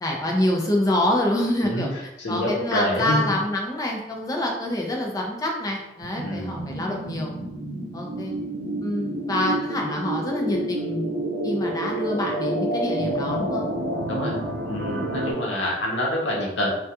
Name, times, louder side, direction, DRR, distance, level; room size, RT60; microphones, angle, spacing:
voice 1, 0.0-1.9 2.3-7.3 7.9-8.3 8.8-11.2 11.4-13.7, left 1 dB, 20° left, 0 dB, 0.4 m, -26 dB
voice 2, 2.2-3.2 6.2-6.6 14.1-14.3 14.7-16.7, left 1 dB, 80° left, -3 dB, 0.7 m, -26 dB
sound 1, 6.0-15.3, right 1 dB, 65° right, 0.4 m, -29 dB
2.3 x 2.2 x 2.8 m, 0.91 s
head